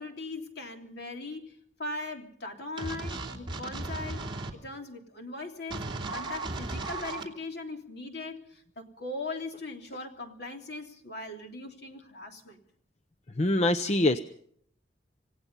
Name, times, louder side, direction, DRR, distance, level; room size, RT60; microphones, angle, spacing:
voice 1, 0.0-12.6, left 2 dB, 60° left, 3 dB, 3.2 m, -40 dB
sound 1, 2.8-4.5 5.7-7.2, right 2 dB, 25° right, 2.9 m, -35 dB
voice 2, 13.4-14.2, left 1 dB, 40° left, 11 dB, 0.7 m, -24 dB
27.0 x 17.5 x 5.5 m, 0.65 s
head